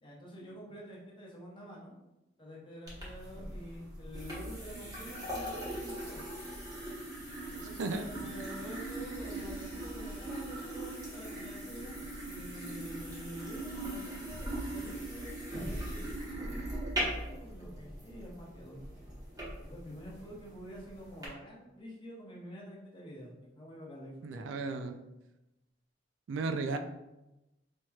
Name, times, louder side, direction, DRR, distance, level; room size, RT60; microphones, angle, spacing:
voice 1, 0.0-1.9 2.4-6.2 7.5-18.8 19.6-25.0, equal, 25° left, -3 dB, 0.9 m, -48 dB
sound 1, 2.9-21.3, right 1 dB, 20° right, 1.0 m, -40 dB
voice 2, 24.2-25.0 26.3-26.8, right 3 dB, 80° right, 7 dB, 0.3 m, -34 dB
4.4 x 2.9 x 2.3 m, 0.95 s
head